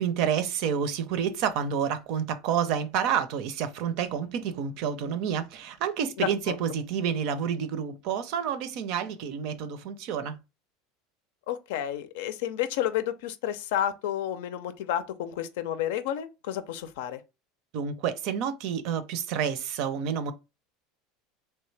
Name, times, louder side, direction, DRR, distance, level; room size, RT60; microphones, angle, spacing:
voice 1, 0.0-10.4 17.7-20.3, right 8 dB, 65° right, 0.5 m, -29 dB
voice 2, 6.2-6.6 11.5-17.2, left 11 dB, 80° left, 0.5 m, -31 dB
3.3 x 2.8 x 3.2 m
supercardioid pair, 115°, 0 cm